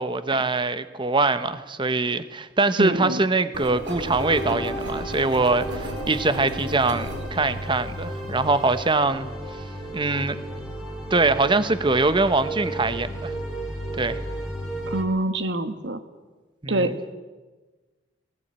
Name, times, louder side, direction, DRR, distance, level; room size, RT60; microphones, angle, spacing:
voice 1, 0.0-9.3 9.9-10.4 11.1-13.3 14.0-14.2 16.6-17.0, right 3 dB, 25° right, 12 dB, 1.1 m, -23 dB
voice 2, 2.8-3.2 14.9-16.0 16.7-16.9, right 1 dB, 65° right, 10 dB, 1.6 m, -25 dB
Engine, 3.5-9.0, right 1 dB, 85° right, 5.0 m, -35 dB
sound 1, 4.2-15.0, right 1 dB, ahead, 3.9 m, -33 dB
19.5 x 17.5 x 8.9 m, 1.3 s
head